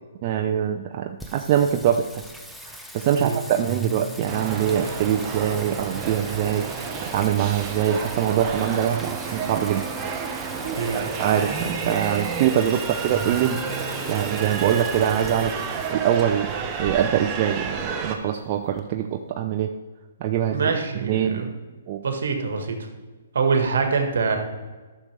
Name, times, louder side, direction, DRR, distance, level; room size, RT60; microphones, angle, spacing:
voice 1, 0.2-2.2 2.7-6.7 7.0-10.2 10.9-15.5 15.9-16.5 16.8-19.7 20.2-21.5 21.9-22.0, right 10 dB, 40° right, 4 dB, 0.5 m, -24 dB
Singing, 1.2-18.8, right 1 dB, ahead, 0.7 m, -39 dB
sound 1, 4.3-18.2, right 6 dB, 25° right, 1.1 m, -31 dB
voice 2, 10.7-11.1 20.5-21.5 22.0-22.9 23.3-24.4, right 5 dB, 70° right, 5 dB, 1.5 m, -24 dB
11.5 x 6.6 x 3.3 m, 1.3 s
hypercardioid pair, 135°, 0 cm